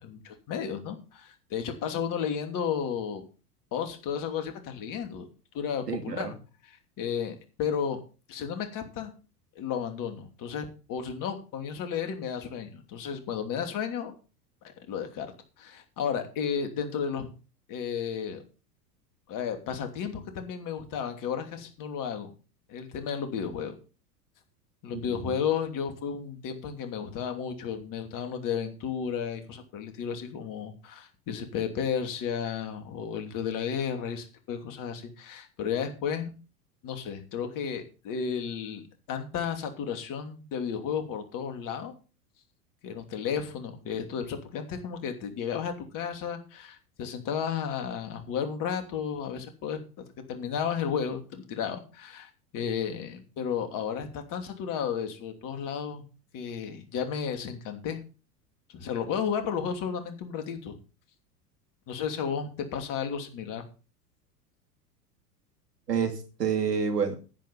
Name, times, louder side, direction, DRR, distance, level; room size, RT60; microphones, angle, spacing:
voice 1, 0.0-3.2 3.7-5.3 5.5-6.3 7.0-8.0 8.3-9.1 9.6-14.1 14.6-15.3 15.6-17.3 17.7-18.4 19.3-22.3 22.7-23.8 24.8-36.3 36.8-38.8 39.1-41.9 42.8-49.8 50.3-56.0 56.3-58.0 58.7-60.8 61.9-63.6, left 7 dB, 40° left, 2.9 m, -33 dB
voice 2, 5.9-6.3 24.9-25.4 65.9-67.2, right 6 dB, 80° right, 2.7 m, -29 dB
10.5 x 9.7 x 5.5 m
hypercardioid pair, 90°, 47 cm